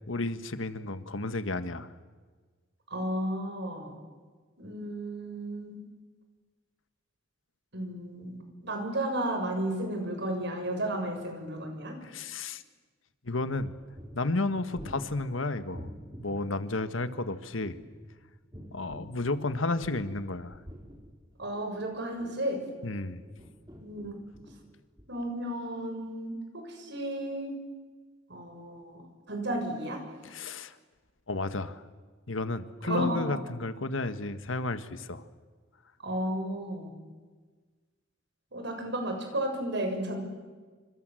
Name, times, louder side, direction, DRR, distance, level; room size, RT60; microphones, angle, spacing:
voice 1, 0.1-1.9 12.0-12.6 13.2-13.7 14.1-15.9 16.2-17.8 18.7-20.6 22.8-23.2 30.3-30.7 31.3-31.8 32.3-35.2, left 2 dB, 80° left, 12 dB, 1.5 m, -32 dB
voice 2, 2.9-3.9 4.6-5.8 7.7-12.0 21.4-22.6 23.8-24.2 25.1-27.5 28.3-30.0 32.8-33.4 36.0-36.9 38.5-40.2, right 1 dB, 60° right, 4 dB, 6.8 m, -33 dB
sound 1, 13.6-16.3 17.6-20.2 20.5-22.6 23.2-24.6 25.0-25.1, equal, 20° right, 4.5 m, -48 dB
28.5 x 26.0 x 7.8 m, 1.4 s
head